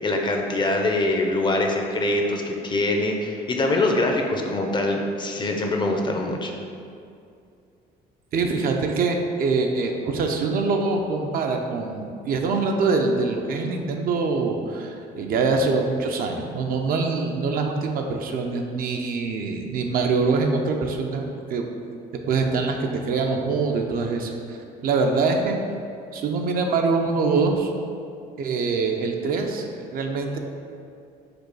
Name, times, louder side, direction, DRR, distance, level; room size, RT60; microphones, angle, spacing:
voice 1, 0.0-6.5, left 2 dB, 25° left, 2 dB, 0.5 m, -24 dB
voice 2, 8.3-21.7 22.3-24.6 24.8-25.6 26.1-27.7 28.4-30.4, right 4 dB, 60° right, 3 dB, 0.5 m, -24 dB
5.0 x 2.3 x 4.5 m, 2.4 s
cardioid pair, 110°, 17 cm